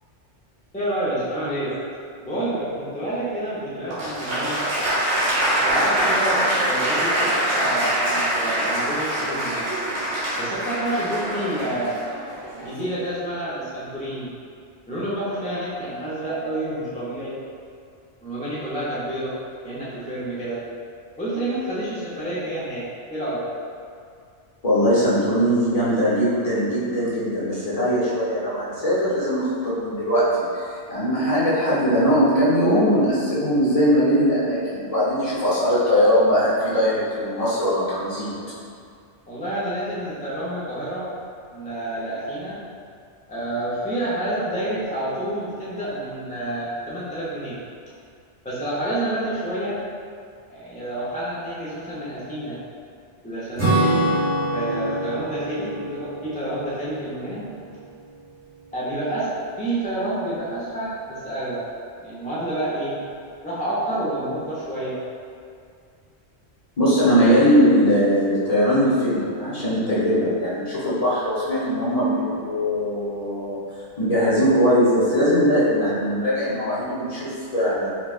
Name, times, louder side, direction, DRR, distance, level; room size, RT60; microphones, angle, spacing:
voice 1, 0.7-1.7 2.2-4.6 5.6-9.7 10.4-12.0 12.6-14.3 14.9-17.4 18.2-19.4 19.6-20.6 21.2-23.5 39.3-41.1 41.5-42.6 43.3-47.6 48.4-49.8 50.5-52.6 53.2-54.2 54.5-57.5 58.7-61.6 62.0-63.0 63.4-65.0, right 1 dB, 10° left, -10 dB, 0.4 m, -28 dB
Applause, 3.9-12.8, right 1 dB, 75° right, 1.1 m, -24 dB
voice 2, 24.6-38.5 66.8-73.6 74.0-77.9, equal, 35° left, -10 dB, 0.9 m, -20 dB
Acoustic guitar / Strum, 53.6-58.4, right 1 dB, 10° right, 1.1 m, -26 dB
4.5 x 2.2 x 2.4 m, 2.3 s
omnidirectional pair, 1.2 m